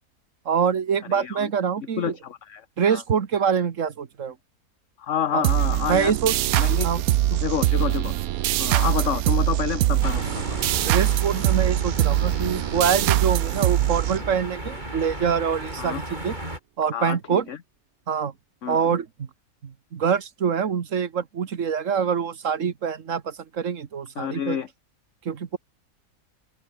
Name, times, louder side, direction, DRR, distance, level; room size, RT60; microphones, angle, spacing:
voice 1, 0.4-2.1 2.8-4.3 5.3-5.4 5.9-6.3 6.8-7.0 10.8-16.4 16.8-17.4 18.1-18.3 18.7-19.3 19.6-24.6 25.2-25.6, right 7 dB, 65° right, 1.6 m, -25 dB
voice 2, 1.1-1.5 2.0-3.0 5.0-6.1 6.6-6.9 7.3-8.1 8.6-10.6 15.8-16.0 16.9-17.6 18.6-18.9 24.2-24.7, left 9 dB, 60° left, 1.4 m, -29 dB
sound 1, 5.4-14.7, right 14 dB, 85° right, 1.1 m, -23 dB
sound 2, 10.0-16.6, right 1 dB, 30° right, 7.6 m, -34 dB
open air
omnidirectional pair, 1.5 m